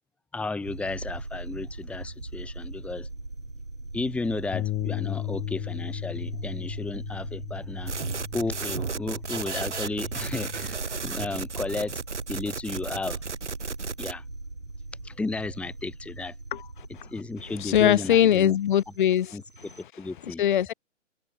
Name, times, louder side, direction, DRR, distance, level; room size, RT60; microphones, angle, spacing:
voice 1, 0.3-3.1 3.9-8.0 8.3-12.0 12.3-13.2 14.0-14.2 15.0-16.3 17.1-18.6 18.9-19.0 19.3-19.4 20.0-20.4, left 3 dB, 5° left, 2.1 m, -33 dB
sound 1, 0.6-19.8, right 2 dB, 85° right, 5.0 m, -40 dB
Bass guitar, 4.5-10.8, left 18 dB, 20° left, 6.2 m, -36 dB
sound 2, 7.9-14.1, right 5 dB, 65° right, 3.5 m, -34 dB
voice 2, 17.6-19.4 20.4-20.7, left 10 dB, 40° left, 1.1 m, -21 dB
figure-of-eight pair, 130°, 37 cm